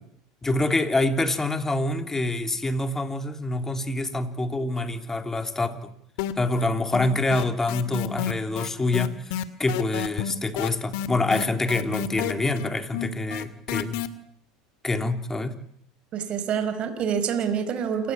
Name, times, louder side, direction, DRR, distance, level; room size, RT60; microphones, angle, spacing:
voice 1, 0.4-5.9 6.4-9.3 9.6-14.0 14.8-15.6, left 2 dB, 15° left, 8 dB, 3.2 m, -26 dB
sound 1, 6.2-6.7 6.9-14.1, left 12 dB, 70° left, 2.1 m, -30 dB
voice 2, 16.1-18.1, right 7 dB, 45° right, 9 dB, 4.8 m, -27 dB
28.5 x 16.5 x 9.9 m, 0.68 s
hypercardioid pair, 90°, 3 cm